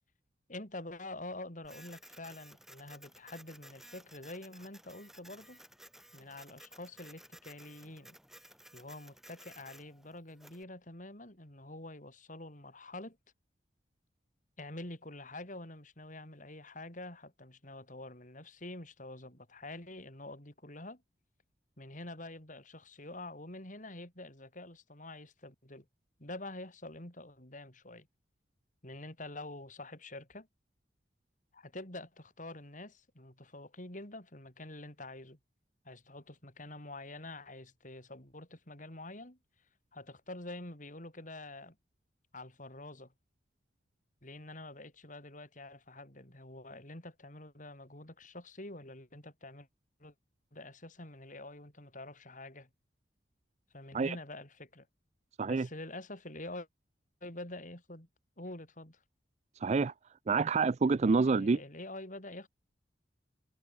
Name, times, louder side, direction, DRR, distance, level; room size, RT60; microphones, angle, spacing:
voice 1, 0.5-5.6 6.1-8.2 8.7-13.2 14.6-21.0 21.8-25.9 26.2-28.1 28.8-30.5 31.5-35.4 35.8-39.4 39.9-41.8 42.3-43.1 44.2-49.7 50.0-50.1 50.5-52.7 53.7-54.9 55.4-56.7 57.2-58.1 58.4-59.0 61.3-62.5, left 2 dB, 45° left, 6.8 m, -47 dB
Printer, 1.6-10.6, right 1 dB, ahead, 4.4 m, -56 dB
voice 2, 59.6-59.9 60.3-61.6, right 4 dB, 40° right, 0.4 m, -27 dB
head